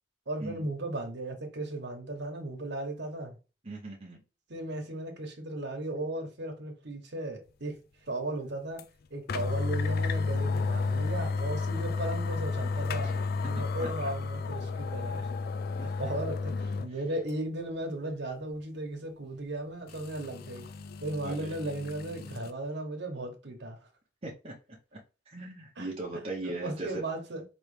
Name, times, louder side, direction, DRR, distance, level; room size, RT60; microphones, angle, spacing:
voice 1, 0.3-3.4 4.5-8.8 9.1-13.1 13.4-15.3 15.8-20.7 21.0-23.8 25.8-27.4, right 1 dB, 65° right, 1.1 m, -36 dB
voice 2, 3.6-4.2 13.0-13.2 13.8-13.9 15.8-15.9 21.2-21.5 24.2-24.5 24.9-25.0 25.3-27.0, right 2 dB, 35° right, 0.9 m, -38 dB
sound 1, 8.8-8.9 9.3-16.9 17.3-17.4 19.9-22.5, left 4 dB, 55° left, 0.4 m, -32 dB
4.3 x 3.0 x 3.2 m
head